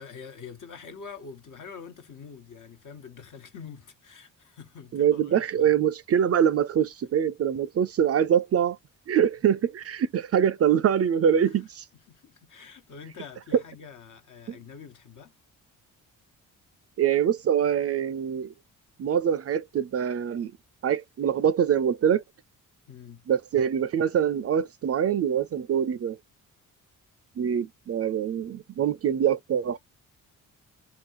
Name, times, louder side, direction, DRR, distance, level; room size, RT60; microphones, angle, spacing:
voice 1, 0.0-5.7 11.4-11.5 11.9-15.3 22.9-23.2, left 6 dB, 60° left, 1.3 m, -45 dB
voice 2, 4.9-8.8 9.1-11.8 14.5-14.6 17.0-18.5 19.0-20.5 20.8-22.2 23.3-26.2 27.4-29.8, right 8 dB, 45° right, 0.4 m, -24 dB
3.8 x 2.7 x 4.6 m
cardioid pair, 90°, 34 cm